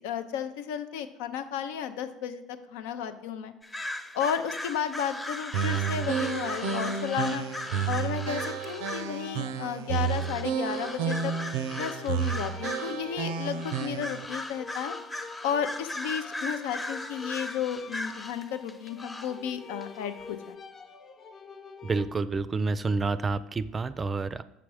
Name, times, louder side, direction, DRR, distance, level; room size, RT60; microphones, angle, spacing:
voice 1, 0.0-3.5 4.1-7.5 7.9-11.3 11.8-14.9 15.4-20.6, left 8 dB, 85° left, 10 dB, 0.6 m, -33 dB
sound 1, 3.6-9.2 10.0-13.1 13.5-19.5 19.8-19.9, left 1 dB, 15° left, 0.9 m, -38 dB
sound 2, 5.5-14.3, right 7 dB, 90° right, 0.5 m, -31 dB
sound 3, 5.7-22.1, left 5 dB, 45° left, 1.0 m, -46 dB
voice 2, 21.8-24.4, right 3 dB, 25° right, 14 dB, 0.4 m, -29 dB
7.1 x 5.9 x 4.9 m, 0.87 s
supercardioid pair, 95°, 0 cm